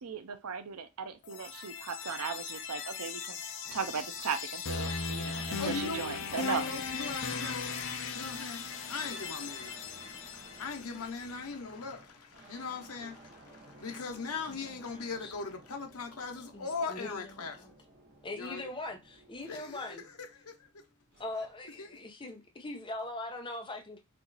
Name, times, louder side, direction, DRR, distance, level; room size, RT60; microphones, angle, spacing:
voice 1, 0.0-3.4 3.7-6.7, right 6 dB, 85° right, 0.6 m, -37 dB
sound 1, 1.2-11.2, left 5 dB, 55° left, 0.7 m, -38 dB
sound 2, 3.6-21.7, right 1 dB, 45° right, 1.0 m, -56 dB
voice 2, 5.6-7.6 8.1-17.6 18.4-18.7 19.5-20.8 21.8-21.9, left 4 dB, 80° left, 0.9 m, -40 dB
voice 3, 14.5-15.3 16.5-17.7 18.2-20.0 21.2-24.0, left 2 dB, 20° left, 0.8 m, -41 dB
4.4 x 2.6 x 4.0 m
head